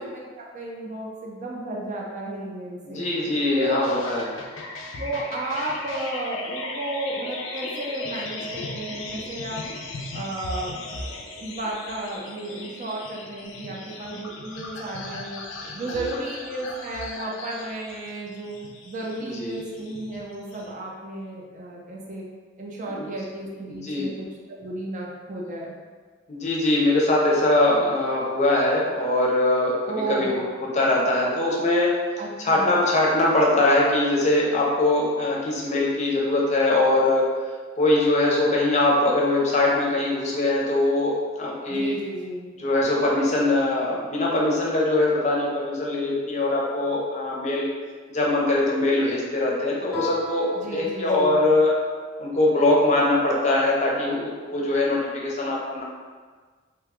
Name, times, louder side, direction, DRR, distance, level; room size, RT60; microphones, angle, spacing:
voice 1, 0.0-3.1 3.6-3.9 5.0-9.6 10.1-15.4 15.7-18.6 18.8-22.2 22.6-25.7 29.9-30.5 32.2-32.8 41.7-42.5 50.5-51.4, right 1 dB, 40° right, -2 dB, 0.5 m, -33 dB
voice 2, 2.8-4.3 15.9-16.0 19.2-19.5 22.9-23.1 23.7-24.1 26.3-31.9 32.4-37.3 37.8-41.9 42.6-47.7 48.1-51.7 52.2-55.8, left 2 dB, 35° left, -3 dB, 0.6 m, -22 dB
sound 1, 3.8-20.7, left 2 dB, 85° left, 0.4 m, -37 dB
Guitar, 49.9-52.4, left 2 dB, ahead, 0.7 m, -37 dB
2.8 x 2.2 x 3.5 m, 1.5 s
head